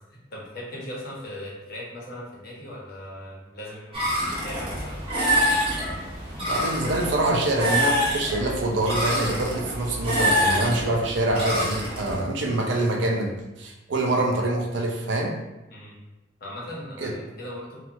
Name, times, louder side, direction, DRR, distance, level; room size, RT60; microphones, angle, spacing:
voice 1, 0.3-5.9 15.7-15.9 16.4-17.8, left 1 dB, 60° left, -5 dB, 0.9 m, -39 dB
sound 1, 3.9-12.2, equal, 30° right, 0.8 m, -26 dB
voice 2, 6.5-15.3 17.0-17.1, right 2 dB, 70° right, 2 dB, 0.5 m, -25 dB
2.9 x 2.4 x 2.6 m, 1.0 s
head